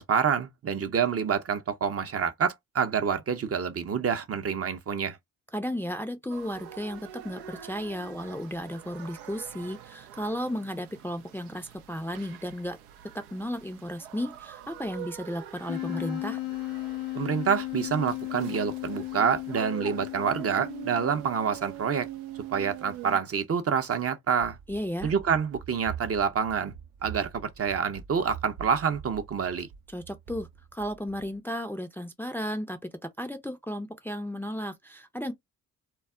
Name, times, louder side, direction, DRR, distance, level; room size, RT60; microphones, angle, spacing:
voice 1, 0.0-5.2 17.1-22.1 22.5-24.6 25.0-26.7 27.0-29.7, right 7 dB, 40° right, 0.6 m, -27 dB
voice 2, 5.5-12.8 13.1-16.4 24.7-25.1 29.9-32.8 33.2-35.3, equal, 5° left, 0.4 m, -34 dB
sound 1, 6.3-23.2, right 11 dB, 90° right, 0.5 m, -44 dB
Wind instrument woodwind instrument, 15.7-21.3, left 18 dB, 60° left, 0.5 m, -35 dB
Run, 24.3-31.3, right 8 dB, 70° right, 0.8 m, -45 dB
2.2 x 2.0 x 3.5 m
hypercardioid pair, 50°, 36 cm